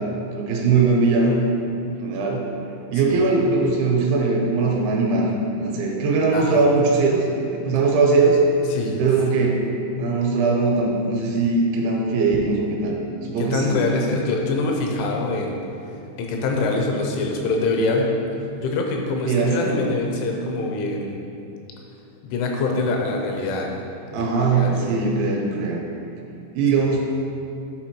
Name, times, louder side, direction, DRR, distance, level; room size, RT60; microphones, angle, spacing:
voice 1, 0.4-1.3 1.8-2.5 2.9-7.3 7.5-8.4 9.0-9.6 10.0-13.8 19.3-19.9 24.1-25.8 26.5-27.0, right 4 dB, 80° right, -1 dB, 3.2 m, -20 dB
voice 2, 6.3-6.6 8.7-9.0 13.4-15.6 16.2-18.1 18.6-21.2 22.2-23.7 24.1-25.0, left 3 dB, 85° left, 1 dB, 3.1 m, -24 dB
12.5 x 4.2 x 3.0 m, 2.7 s
omnidirectional pair, 5.5 m